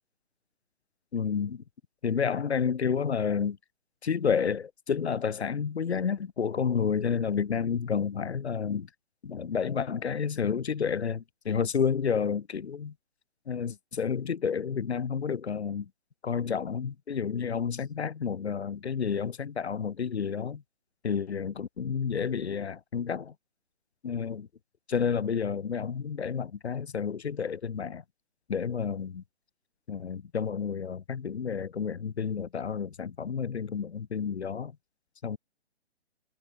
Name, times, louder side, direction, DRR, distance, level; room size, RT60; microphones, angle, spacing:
voice 1, 1.1-1.6 2.0-3.6 4.0-8.9 9.2-12.9 13.5-15.9 16.2-20.6 21.0-23.3 24.0-24.5 24.9-28.0 28.5-29.2 29.9-34.7 35.2-35.4, left 6 dB, 70° left, 1.6 m, -30 dB
hypercardioid pair, 165°, 34 cm